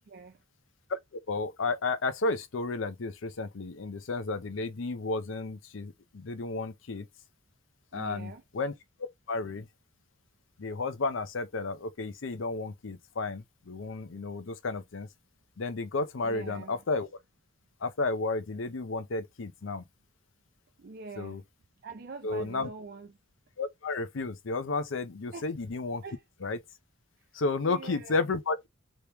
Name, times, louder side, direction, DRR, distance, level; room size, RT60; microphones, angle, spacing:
voice 1, 0.1-0.4 7.9-8.4 16.2-16.8 20.8-21.4 21.8-23.1 25.3-25.5 26.0-26.2 27.6-28.2, right 4 dB, 50° right, 0.5 m, -44 dB
voice 2, 1.3-7.1 7.9-8.7 9.3-9.7 10.6-15.1 15.6-17.1 17.8-19.8 21.2-21.4 22.2-22.7 23.6-26.0 26.4-26.6 27.3-28.7, left 3 dB, 75° left, 0.6 m, -32 dB
3.1 x 2.9 x 3.4 m
head